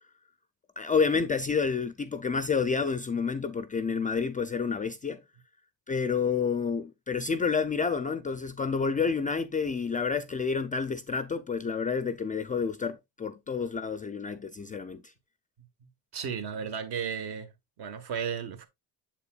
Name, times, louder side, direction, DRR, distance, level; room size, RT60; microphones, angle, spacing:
voice 1, 0.8-5.2 5.9-15.1, left 5 dB, 20° left, 0.3 m, -29 dB
voice 2, 16.1-17.5 17.8-18.7, right 7 dB, 65° right, 1.5 m, -34 dB
7.4 x 6.8 x 2.3 m
cardioid pair, 135°, 42 cm